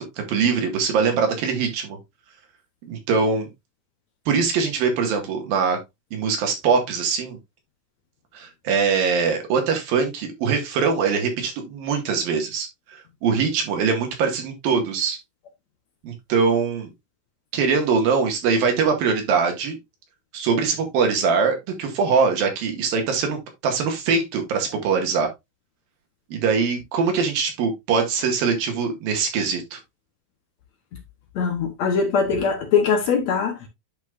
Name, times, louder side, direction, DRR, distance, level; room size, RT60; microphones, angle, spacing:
voice 1, 0.0-2.0 2.8-3.5 4.3-5.8 6.1-7.4 8.3-15.2 16.0-16.9 17.5-19.8 20.3-25.3 26.3-29.8, right 5 dB, 80° right, 3.7 m, -22 dB
voice 2, 31.4-33.7, left 6 dB, 60° left, 2.0 m, -21 dB
10.5 x 5.5 x 2.5 m
omnidirectional pair, 4.1 m